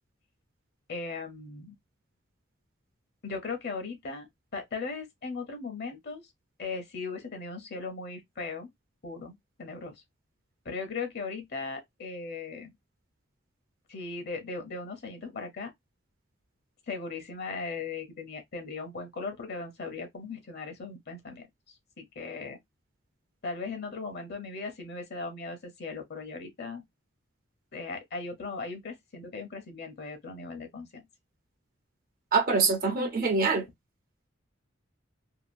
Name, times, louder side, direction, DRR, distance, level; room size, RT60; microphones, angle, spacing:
voice 1, 0.9-1.7 3.2-4.3 4.5-6.2 6.6-8.7 9.0-10.0 10.6-12.7 13.9-15.7 16.9-22.6 23.4-26.8 27.7-31.0, left 4 dB, 55° left, 0.8 m, -38 dB
voice 2, 32.3-33.6, right 4 dB, 50° right, 0.7 m, -24 dB
2.8 x 2.4 x 2.5 m
head